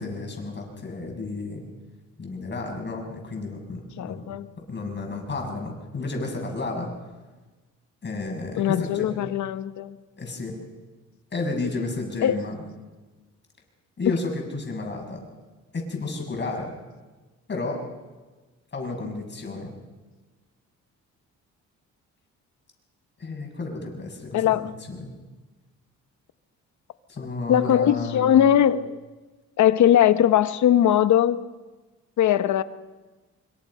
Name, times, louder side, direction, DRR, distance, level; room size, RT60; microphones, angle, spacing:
voice 1, 0.0-1.6 2.2-4.2 4.7-6.9 8.0-9.2 10.2-10.6 11.3-12.6 14.0-15.3 15.7-16.7 17.5-17.9 18.7-19.7 23.2-25.1 27.1-28.5, left 3 dB, 35° left, 2 dB, 6.9 m, -32 dB
voice 2, 4.0-4.5 8.6-10.0 12.2-12.4 24.3-24.7 27.5-29.0 29.6-31.4 32.2-32.6, left 10 dB, 70° left, 12 dB, 1.1 m, -20 dB
25.0 x 23.0 x 5.6 m, 1.3 s
cardioid pair, 90°, 30 cm